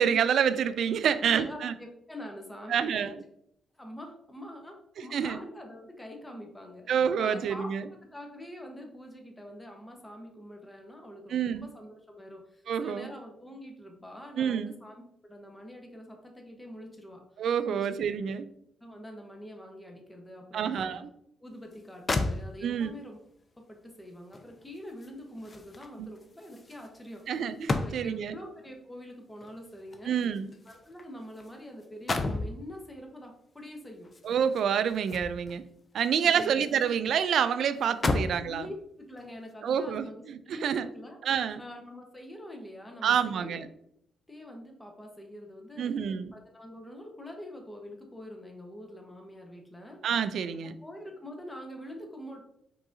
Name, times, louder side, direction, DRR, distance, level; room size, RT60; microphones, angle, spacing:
voice 1, 0.0-1.7 2.7-3.1 5.1-5.4 6.9-7.9 11.3-11.7 12.7-13.1 14.4-14.7 17.4-18.5 20.5-21.1 22.6-22.9 26.0-26.1 27.3-28.4 30.1-30.5 34.2-35.6 35.9-38.7 39.6-40.9 41.2-41.6 43.0-43.7 45.8-46.3 50.0-50.7, right 8 dB, 70° right, 12 dB, 0.3 m, -28 dB
voice 2, 1.3-3.1 3.7-17.2 17.6-17.9 18.8-21.0 21.4-23.2 23.7-27.2 27.7-30.2 30.7-34.1 36.2-36.5 38.1-38.8 39.1-41.2 41.6-43.7 44.3-45.9 46.3-50.0 50.8-52.4, left 1 dB, 15° left, 2 dB, 1.0 m, -45 dB
sound 1, 21.7-21.8 22.1-22.9 24.3-28.3 29.4-31.5 31.8-32.6 34.0-35.6 36.0-37.0 37.3-37.4 37.8-38.5 39.2-39.4, left 3 dB, 35° left, 0.5 m, -34 dB
4.7 x 3.8 x 2.6 m, 0.73 s
supercardioid pair, 65°, 0 cm